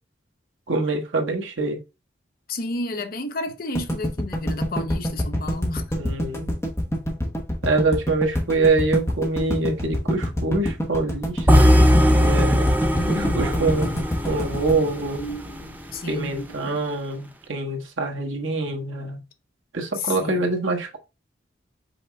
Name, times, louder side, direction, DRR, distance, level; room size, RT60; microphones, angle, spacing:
voice 1, 0.7-1.8 6.0-6.5 7.6-11.7 12.1-12.7 13.1-15.2 16.1-19.2 19.7-21.0, right 3 dB, 85° right, 1.3 m, -25 dB
voice 2, 2.5-6.0 12.9-13.7 15.2-16.8 20.0-20.5, left 2 dB, 50° left, 0.7 m, -32 dB
sound 1, 3.8-15.9, equal, 15° left, 1.1 m, -26 dB
sound 2, 11.5-15.6, equal, 10° right, 0.5 m, -19 dB
5.6 x 4.2 x 2.2 m
head